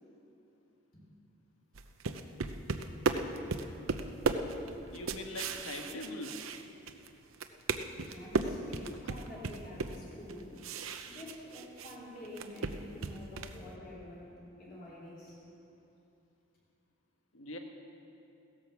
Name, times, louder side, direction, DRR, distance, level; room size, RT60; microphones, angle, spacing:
sound 1, 1.7-7.1 7.3-12.0 12.3-13.6, right 4 dB, 85° right, 0.7 m, -35 dB
voice 1, 4.9-6.4 17.3-17.6, left 2 dB, 85° left, 4 dB, 1.5 m, -42 dB
voice 2, 8.1-10.7 11.0-15.4, left 1 dB, 45° left, -6 dB, 3.9 m, -48 dB
16.5 x 11.0 x 7.1 m, 2.8 s
head